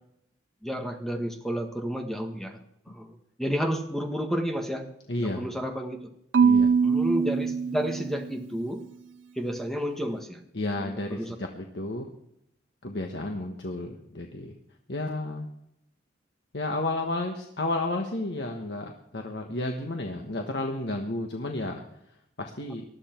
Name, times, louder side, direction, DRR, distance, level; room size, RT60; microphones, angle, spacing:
voice 1, 0.6-2.6 2.9-4.9 5.2-6.1 6.8-8.8 9.3-10.4 10.8-11.3, equal, ahead, 4 dB, 1.5 m, -31 dB
voice 2, 5.1-5.5 6.4-6.7 10.5-12.1 12.8-14.6 14.9-15.5 16.5-21.8 22.4-22.8, left 2 dB, 70° left, 3 dB, 1.4 m, -32 dB
Marimba xylophone / Wood, 6.3-8.5, right 6 dB, 85° right, 0.6 m, -23 dB
20.0 x 12.5 x 4.5 m, 0.78 s
head